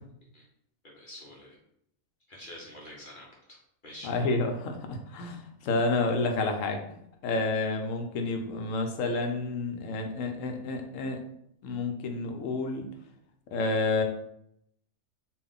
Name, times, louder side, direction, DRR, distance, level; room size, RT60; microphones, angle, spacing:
voice 1, 0.8-1.6 2.3-3.6 3.8-4.1, left 1 dB, 45° left, -3 dB, 0.8 m, -47 dB
voice 2, 4.0-6.8 7.2-11.2 11.6-12.9 13.5-14.0, left 3 dB, 75° left, 4 dB, 1.0 m, -29 dB
3.8 x 2.5 x 3.5 m, 0.72 s
omnidirectional pair, 1.4 m